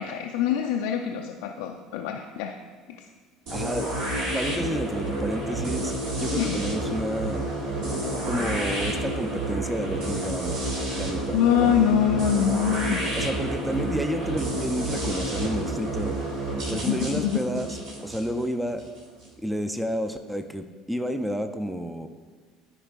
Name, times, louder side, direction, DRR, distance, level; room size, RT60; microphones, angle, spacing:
voice 1, 0.0-2.6 6.4-6.6 11.3-13.1 16.7-17.4, left 9 dB, 65° left, 2 dB, 0.4 m, -24 dB
voice 2, 3.5-3.9 4.3-7.5 8.2-10.7 10.9-11.4 13.2-16.2 16.7-17.8 18.0-18.8 19.4-22.1, equal, 5° right, 8 dB, 0.5 m, -30 dB
sound 1, 3.5-19.3, right 1 dB, 60° right, 1.6 m, -30 dB
13.0 x 5.0 x 2.4 m, 1.4 s
figure-of-eight pair, 60°, 0 cm